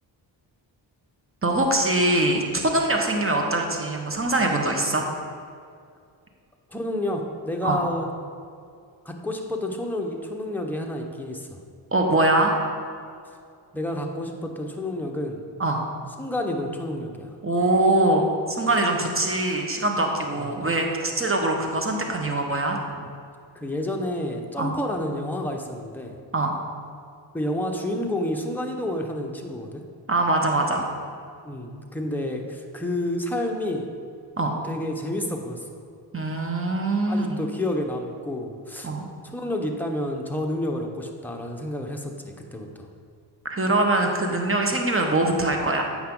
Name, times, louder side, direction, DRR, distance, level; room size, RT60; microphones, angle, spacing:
voice 1, 1.4-5.1 7.6-7.8 11.9-12.5 15.6-15.8 17.4-22.8 24.6-24.7 26.3-26.5 30.1-30.9 34.4-34.5 36.1-37.4 38.8-39.0 43.4-45.8, right 2 dB, 25° right, 2 dB, 1.4 m, -23 dB
voice 2, 6.7-8.1 9.0-11.6 13.7-15.4 16.2-17.3 20.3-20.6 23.5-26.2 27.3-29.8 31.4-33.9 34.6-35.7 37.1-38.9 39.2-42.9, left 1 dB, 5° left, 1 dB, 1.1 m, -29 dB
8.4 x 5.9 x 3.9 m, 2.3 s
supercardioid pair, 45°, 48 cm